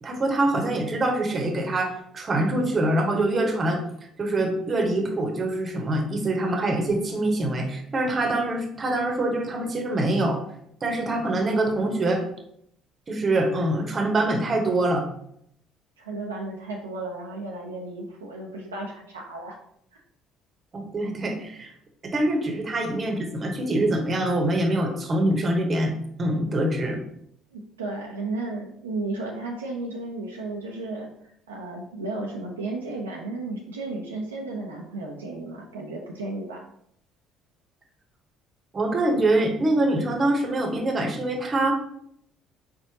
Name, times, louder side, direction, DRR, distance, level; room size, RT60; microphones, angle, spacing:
voice 1, 0.0-3.8 4.2-10.4 10.8-12.2 13.1-15.1 20.7-21.7 22.0-25.9 26.2-27.0 38.7-41.7, right 1 dB, 35° right, 4 dB, 1.0 m, -24 dB
voice 2, 16.0-19.6 27.5-31.1 31.5-36.6, right 2 dB, 85° right, -1 dB, 0.6 m, -34 dB
4.4 x 4.1 x 2.9 m, 0.70 s
hypercardioid pair, 55°, 0 cm